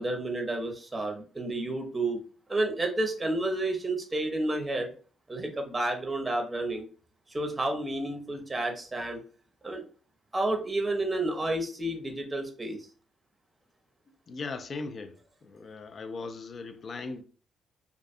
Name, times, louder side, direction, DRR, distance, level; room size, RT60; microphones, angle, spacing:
voice 1, 0.0-2.2 2.5-4.9 5.3-6.9 7.3-9.2 9.6-9.8 10.3-12.9, right 2 dB, 20° right, 0.7 m, -30 dB
voice 2, 14.3-17.2, left 3 dB, 45° left, 0.4 m, -39 dB
2.4 x 2.3 x 2.5 m
cardioid pair, 80°, 0 cm